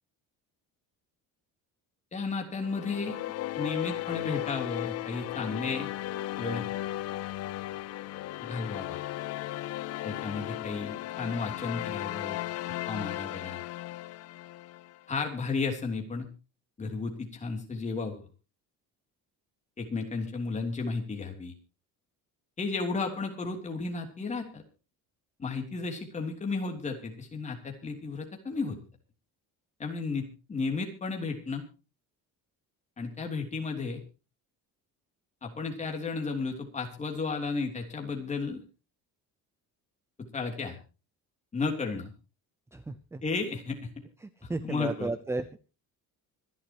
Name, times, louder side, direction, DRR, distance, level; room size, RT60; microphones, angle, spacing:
voice 1, 2.1-3.2 3.6-5.9 6.4-6.6 8.4-9.0 10.0-12.4 12.9-13.6 15.1-16.3 16.8-18.3 19.8-21.5 22.6-24.6 25.4-28.8 29.8-31.6 33.0-34.0 35.4-38.6 40.2-40.8 41.5-42.1 43.2-43.9 44.6-45.1, left 4 dB, 20° left, 3 dB, 3.1 m, -33 dB
sound 1, 2.6-15.0, left 15 dB, 45° left, 0.6 m, -36 dB
voice 2, 42.7-43.2 44.2-45.6, right 2 dB, 10° right, 13 dB, 0.6 m, -34 dB
25.5 x 11.5 x 3.0 m, 0.33 s
cardioid pair, 175°, 35 cm